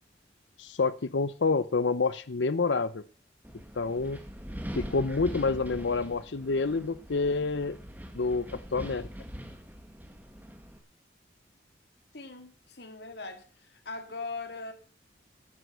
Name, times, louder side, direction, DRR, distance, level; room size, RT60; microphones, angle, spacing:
voice 1, 0.6-3.0 3.8-4.2 4.7-7.8 8.1-9.1, left 4 dB, 90° left, 0.7 m, -28 dB
Wind, 3.4-10.8, equal, 10° right, 2.0 m, -42 dB
voice 2, 12.1-14.7, left 3 dB, 65° left, 2.4 m, -40 dB
12.5 x 9.4 x 6.7 m
head